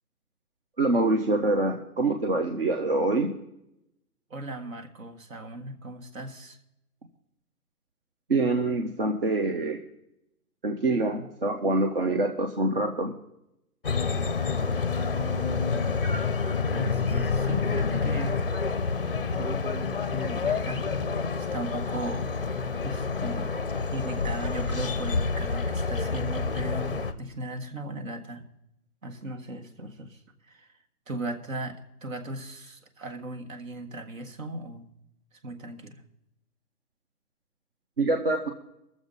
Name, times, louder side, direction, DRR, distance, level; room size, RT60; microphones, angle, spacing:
voice 1, 0.8-3.3 8.3-9.8 10.6-13.1 38.0-38.5, right 2 dB, 40° right, 4 dB, 0.7 m, -25 dB
voice 2, 4.3-6.6 16.7-18.4 19.3-22.3 22.8-23.6 23.9-28.4 29.0-30.7 31.1-34.8 35.4-36.0, right 1 dB, 60° right, 6 dB, 1.7 m, -37 dB
sound 1, 13.8-27.1, left 4 dB, 40° left, 0.5 m, -28 dB
21.0 x 7.2 x 4.0 m, 0.83 s
hypercardioid pair, 170°, 46 cm